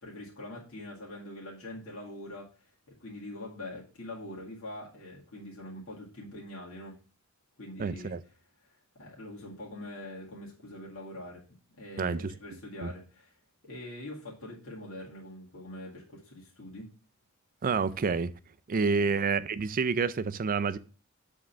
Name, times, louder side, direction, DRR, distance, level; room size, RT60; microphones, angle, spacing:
voice 1, 0.0-2.5 3.0-7.0 7.6-8.2 9.0-11.4 11.8-13.3 13.6-16.9 18.9-19.1, left 1 dB, 70° left, 2.1 m, -43 dB
voice 2, 7.8-8.2 12.0-12.3 12.8-12.9 17.6-18.3 18.7-20.8, right 5 dB, 40° right, 0.4 m, -28 dB
7.6 x 3.7 x 5.7 m
head